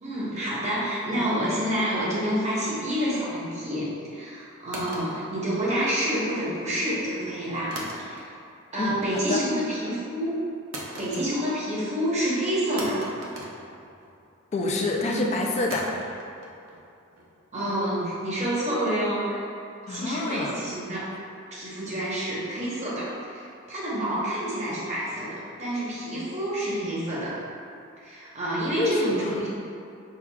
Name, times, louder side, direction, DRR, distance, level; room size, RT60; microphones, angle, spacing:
voice 1, 0.0-8.3 8.7-10.3 11.0-13.0 15.1-15.2 17.5-19.5 19.9-21.0 21.5-27.4 28.0-29.5, equal, 35° right, -7 dB, 0.9 m, -28 dB
sound 1, 4.7-6.1 7.7-8.5 8.9-9.3 10.7-11.7 12.0-12.1 12.8-14.3 15.7-18.7, right 1 dB, 75° right, 0.6 m, -40 dB
voice 2, 8.8-9.4 14.5-15.9 19.9-20.5 28.8-29.4, left 2 dB, 30° left, 0 dB, 0.3 m, -27 dB
5.6 x 2.3 x 2.3 m, 2.5 s
head